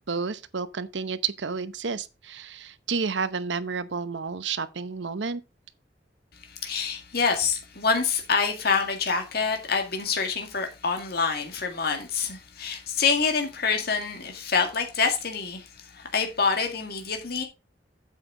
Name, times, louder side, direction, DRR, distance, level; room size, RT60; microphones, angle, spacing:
voice 1, 0.1-5.4, right 5 dB, 85° right, 0.9 m, -31 dB
voice 2, 6.4-17.4, left 5 dB, 60° left, 2.0 m, -26 dB
8.5 x 8.2 x 3.8 m
head